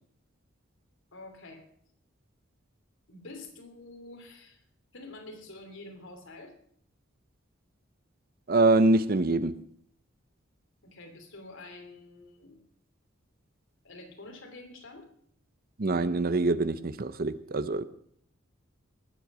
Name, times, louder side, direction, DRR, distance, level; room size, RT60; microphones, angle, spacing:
voice 1, 1.1-1.7 3.1-4.6 4.9-6.5 10.8-12.6 13.8-15.1, left 2 dB, 70° left, 4 dB, 3.0 m, -47 dB
voice 2, 8.5-9.6 15.8-17.9, right 2 dB, 45° right, 14 dB, 0.7 m, -24 dB
19.5 x 7.7 x 6.1 m, 0.63 s
head